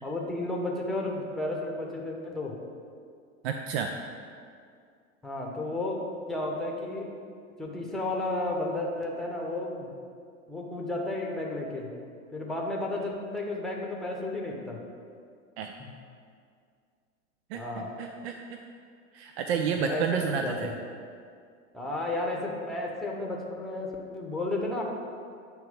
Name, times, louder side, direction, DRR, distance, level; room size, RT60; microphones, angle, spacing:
voice 1, 0.0-2.6 5.2-6.0 6.3-7.1 7.6-9.9 10.5-11.9 12.3-14.8 17.5-17.9 19.9-20.7 21.7-24.8, left 2 dB, ahead, -1 dB, 1.0 m, -32 dB
voice 2, 3.4-4.0 15.6-15.7 17.5-18.6 19.1-20.7, right 6 dB, 50° right, 5 dB, 0.5 m, -30 dB
9.1 x 3.1 x 5.2 m, 2.2 s
figure-of-eight pair, 90°, 42 cm